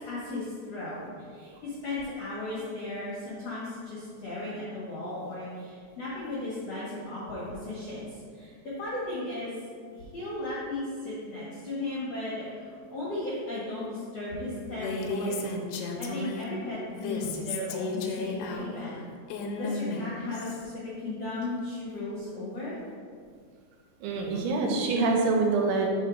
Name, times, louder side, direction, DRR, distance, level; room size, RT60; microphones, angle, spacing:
voice 1, 0.0-9.5 9.9-15.5 15.9-19.0 19.6-22.7, left 2 dB, 65° left, -9 dB, 1.5 m, -36 dB
Female speech woman speaking, 14.7-16.5 16.9-20.7, left 3 dB, 90° left, 3.0 m, -34 dB
voice 2, 24.0-25.9, right 3 dB, 90° right, 1 dB, 3.1 m, -25 dB
6.4 x 4.0 x 5.0 m, 2.1 s
omnidirectional pair, 5.2 m